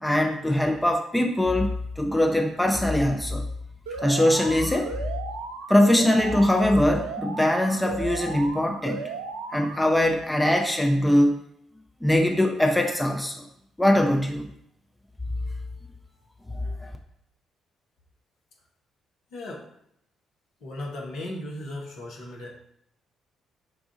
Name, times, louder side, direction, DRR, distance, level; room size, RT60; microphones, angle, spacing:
voice 1, 0.0-3.4 4.0-4.9 5.7-9.1 9.5-11.4 12.0-13.4 13.8-14.5 16.5-16.9, left 1 dB, 10° left, 2 dB, 0.5 m, -22 dB
Alarm, 3.9-9.9, right 4 dB, 75° right, 0.3 m, -36 dB
voice 2, 19.3-19.7 20.6-22.6, left 1 dB, 60° left, -2 dB, 0.9 m, -36 dB
4.9 x 2.4 x 3.8 m, 0.73 s
figure-of-eight pair, 45°, 0 cm